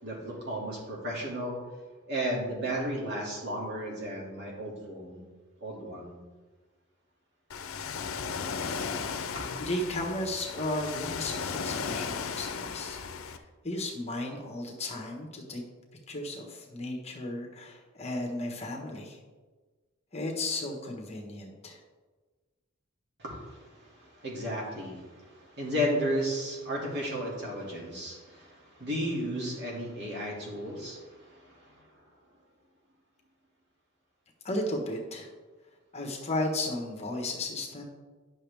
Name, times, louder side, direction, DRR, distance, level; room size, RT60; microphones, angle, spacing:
voice 1, 0.0-1.6 2.1-5.2 5.6-6.2 9.3-9.4 23.2-31.8, equal, 55° right, -3 dB, 2.4 m, -34 dB
Ocean, 7.5-13.4, left 5 dB, 85° left, 0.6 m, -35 dB
voice 2, 9.6-15.6 16.1-19.2 20.1-21.8 34.4-35.3 35.9-37.9, left 1 dB, 30° left, 0 dB, 1.3 m, -34 dB
10.5 x 6.2 x 3.5 m, 1.3 s
head